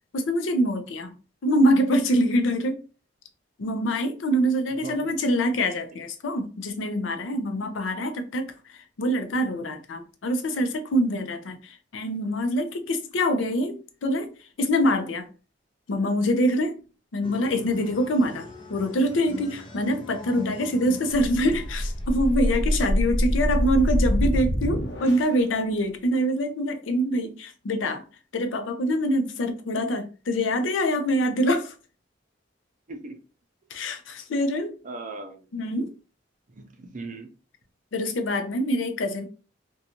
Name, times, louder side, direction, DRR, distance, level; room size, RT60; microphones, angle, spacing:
voice 1, 0.1-1.1 1.4-2.8 3.6-15.3 15.9-16.8 17.1-28.0 28.3-31.7 33.7-34.8 35.5-35.9 37.9-39.3, equal, 90° left, 0.5 m, -25 dB
voice 2, 4.8-5.1 23.3-23.7 32.9-33.2 34.8-35.5 36.5-37.3, right 3 dB, 40° right, 0.5 m, -39 dB
sound 1, 17.2-22.6, left 3 dB, 25° left, 0.4 m, -41 dB
sound 2, 21.1-25.4, equal, 65° left, 0.8 m, -25 dB
2.5 x 2.3 x 2.8 m
head